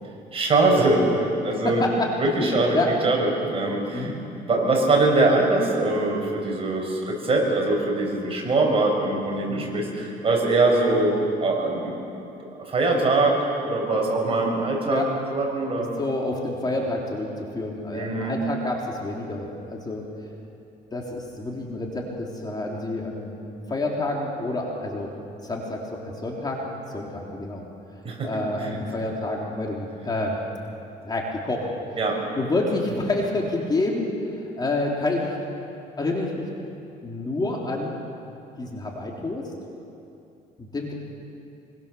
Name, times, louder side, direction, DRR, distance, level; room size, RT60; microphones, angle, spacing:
voice 1, 0.3-1.8 2.2-2.8 3.0-4.1 4.5-12.0 12.6-15.0 15.3-15.9 17.9-18.4 28.0-28.3 28.6-28.8 32.0-32.2, right 2 dB, 35° right, 0 dB, 6.6 m, -22 dB
voice 2, 1.6-2.1 2.4-2.9 3.9-4.2 9.5-9.7 14.9-15.1 16.0-20.0 20.9-23.4 23.7-25.1 25.4-26.6 26.9-27.7 28.2-30.4 31.0-31.7 32.4-35.4 36.0-36.5 37.0-38.1 38.6-39.4 40.6-40.9, left 2 dB, 25° left, -1 dB, 3.6 m, -28 dB
25.5 x 23.5 x 7.0 m, 2.7 s
cardioid pair, 110°, 17 cm